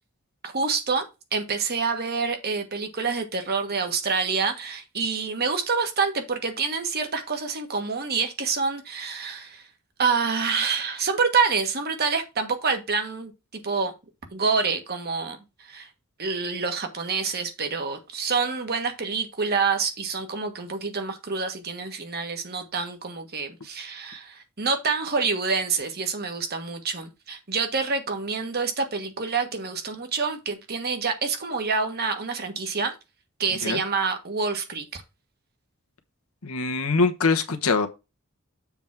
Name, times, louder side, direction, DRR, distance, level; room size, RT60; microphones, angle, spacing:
voice 1, 0.4-1.1 1.3-9.7 10.0-13.9 14.3-15.9 16.2-32.9 33.4-35.0, right 5 dB, 45° right, 1.4 m, -27 dB
voice 2, 36.4-37.9, left 4 dB, 80° left, 1.2 m, -23 dB
7.2 x 3.6 x 5.9 m
head